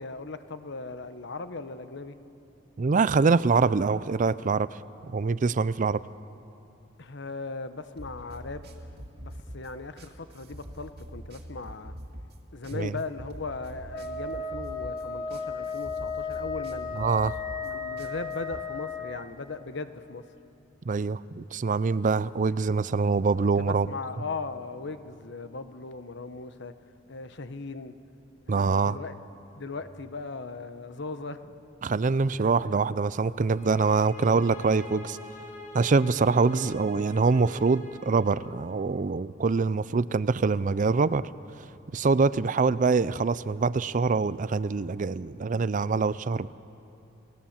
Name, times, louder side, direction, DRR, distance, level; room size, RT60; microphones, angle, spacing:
voice 1, 0.0-2.2 7.0-8.8 9.2-11.9 12.5-17.0 17.6-20.2 23.4-26.7 27.1-27.9 28.5-29.1 29.6-31.6 32.6-32.8, left 3 dB, 65° left, 11 dB, 1.0 m, -38 dB
voice 2, 2.8-4.7 5.1-6.0 12.7-13.0 17.0-17.4 20.9-23.9 28.5-29.0 31.8-35.2 35.7-41.3 41.9-46.5, right 4 dB, 40° right, 17 dB, 0.5 m, -24 dB
sound 1, 8.0-18.6, equal, 55° right, 2.2 m, -44 dB
Wind instrument woodwind instrument, 13.9-19.2, left 4 dB, 20° left, 2.2 m, -35 dB
sound 2, 33.5-38.5, left 1 dB, 45° left, 4.6 m, -44 dB
30.0 x 18.5 x 7.4 m, 2.8 s
head